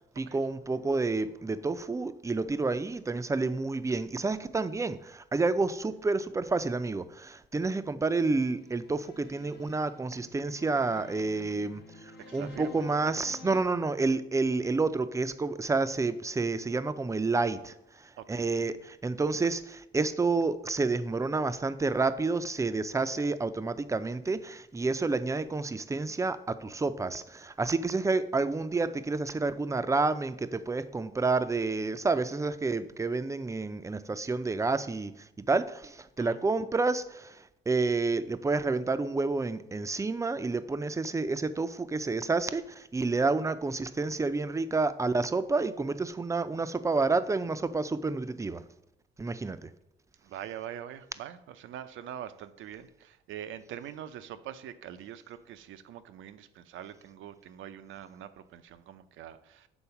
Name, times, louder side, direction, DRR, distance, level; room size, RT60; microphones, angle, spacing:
voice 1, 0.2-48.6 49.2-49.7, right 3 dB, 15° right, 13 dB, 0.4 m, -29 dB
sound 1, 8.5-13.6, left 5 dB, 55° left, 0.8 m, -50 dB
voice 2, 12.2-12.8 18.2-18.5 36.2-36.4 50.2-59.7, right 10 dB, 80° right, 12 dB, 0.6 m, -44 dB
7.1 x 3.9 x 5.7 m, 0.83 s
cardioid pair, 90°, 20 cm